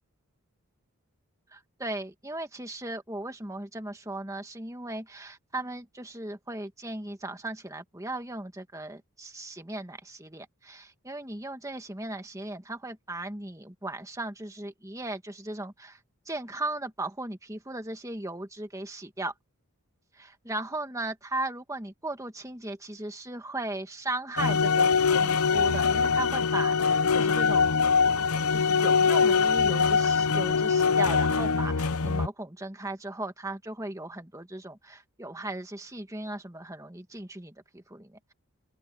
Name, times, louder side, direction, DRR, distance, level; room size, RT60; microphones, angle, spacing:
voice 1, 1.5-16.0 16.3-19.3 20.2-27.7 28.5-38.3, right 2 dB, 15° right, 1.7 m, -37 dB
sound 1, 24.4-32.3, left 5 dB, 80° left, 0.8 m, -23 dB
open air
head